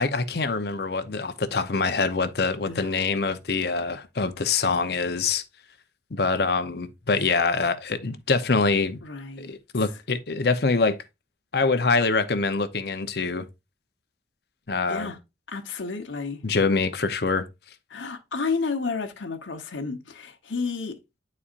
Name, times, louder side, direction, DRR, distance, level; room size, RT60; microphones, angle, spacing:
voice 1, 0.0-5.4 6.1-9.0 9.4-11.0 11.5-13.5 14.7-15.1 16.4-17.5, left 4 dB, 55° left, 0.7 m, -24 dB
voice 2, 9.0-9.5 14.9-15.2 15.5-16.4 17.9-21.0, left 4 dB, 90° left, 1.0 m, -31 dB
9.8 x 4.2 x 2.5 m
head